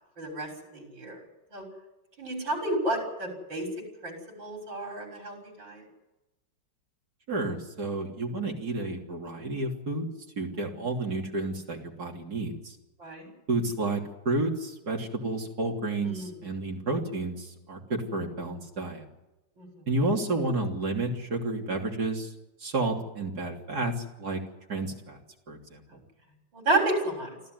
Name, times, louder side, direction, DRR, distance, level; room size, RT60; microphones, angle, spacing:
voice 1, 0.2-1.2 1.5-1.6 2.2-3.7 4.0-5.8 13.0-13.3 16.0-16.3 19.6-19.7 26.5-27.4, right 2 dB, 85° right, 2 dB, 6.9 m, -31 dB
voice 2, 7.3-10.1 10.4-12.8 13.5-19.0 19.9-22.3 22.6-24.4 24.7-25.2 25.5-25.8, right 2 dB, 55° right, 1 dB, 3.7 m, -31 dB
26.0 x 14.5 x 9.5 m, 1.0 s
omnidirectional pair, 2.0 m